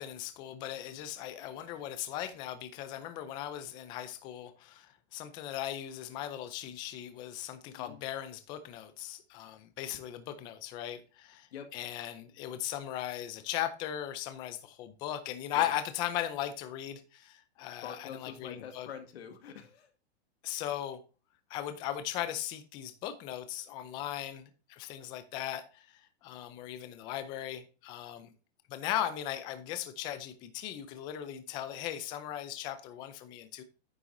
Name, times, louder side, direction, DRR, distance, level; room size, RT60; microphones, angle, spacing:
voice 1, 0.0-18.9 20.4-21.0 21.5-28.3 28.7-33.6, left 12 dB, 15° left, 0.4 m, -38 dB
voice 2, 17.8-19.9, left 8 dB, 70° left, 1.9 m, -45 dB
9.5 x 5.7 x 3.8 m
hypercardioid pair, 160°, 33 cm